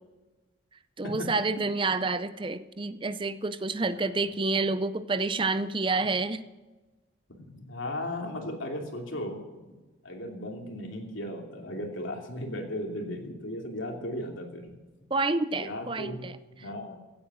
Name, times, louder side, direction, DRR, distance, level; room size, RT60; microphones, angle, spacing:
voice 1, 1.0-6.4 15.1-16.4, right 3 dB, 25° right, 14 dB, 0.5 m, -28 dB
voice 2, 3.8-4.3 7.4-9.6 10.0-14.7 15.5-16.2 16.6-17.0, left 1 dB, 90° left, 2 dB, 2.8 m, -36 dB
16.0 x 8.8 x 6.2 m, 1.2 s
head